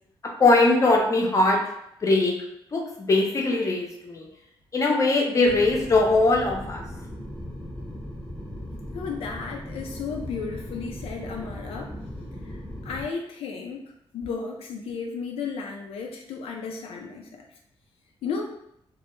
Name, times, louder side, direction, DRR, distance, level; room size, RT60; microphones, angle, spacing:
voice 1, 0.2-1.6 2.0-2.4 2.7-4.3 4.7-6.8, left 2 dB, 35° left, 0 dB, 0.6 m, -21 dB
sound 1, 5.5-13.0, left 1 dB, 10° left, 0.8 m, -38 dB
voice 2, 8.9-11.9 12.4-13.8 14.1-17.3 18.2-18.5, left 5 dB, 85° left, 1 dB, 0.3 m, -34 dB
2.1 x 2.0 x 3.0 m, 0.77 s
cardioid pair, 90°, 10 cm